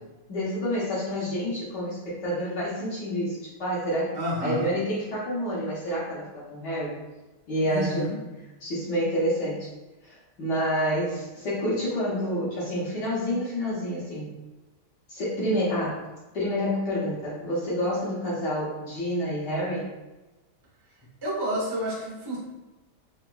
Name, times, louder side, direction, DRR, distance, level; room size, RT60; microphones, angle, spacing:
voice 1, 0.3-4.1 4.4-6.9 7.5-8.1 8.6-9.7 10.0-14.3 15.1-16.0 16.3-19.9, equal, 60° left, -8 dB, 1.5 m, -28 dB
voice 2, 4.1-4.7 7.7-8.1 21.2-22.4, equal, 30° right, -6 dB, 0.4 m, -29 dB
3.9 x 2.8 x 2.2 m, 1.1 s
omnidirectional pair, 2.2 m